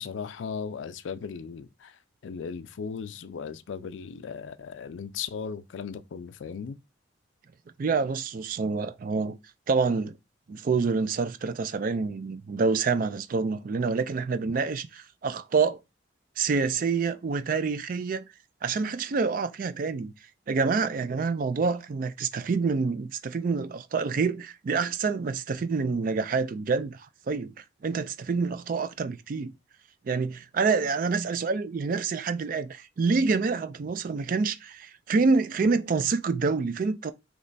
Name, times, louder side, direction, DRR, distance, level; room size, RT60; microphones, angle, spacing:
voice 1, 0.0-2.0 2.2-6.8, left 6 dB, 80° left, 0.4 m, -37 dB
voice 2, 7.8-9.4 9.7-10.1 10.5-15.8 16.4-18.3 18.6-20.1 20.5-27.0 27.3-29.5 30.1-37.1, right 4 dB, 45° right, 0.3 m, -27 dB
3.2 x 3.1 x 3.9 m
head